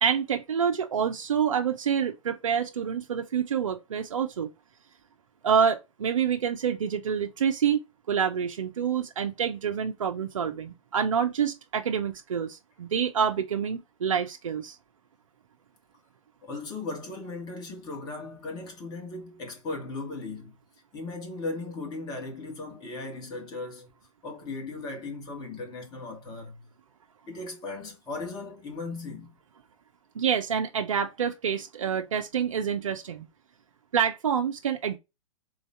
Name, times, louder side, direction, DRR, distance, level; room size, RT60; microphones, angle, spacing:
voice 1, 0.0-4.5 5.4-7.8 8.1-14.8 30.1-33.3 33.9-35.0, right 7 dB, 70° right, 0.6 m, -27 dB
voice 2, 16.4-20.5 20.9-23.9 24.2-26.6 27.3-29.4, left 3 dB, 25° left, 1.7 m, -37 dB
3.8 x 2.7 x 4.5 m
figure-of-eight pair, 110°, 17 cm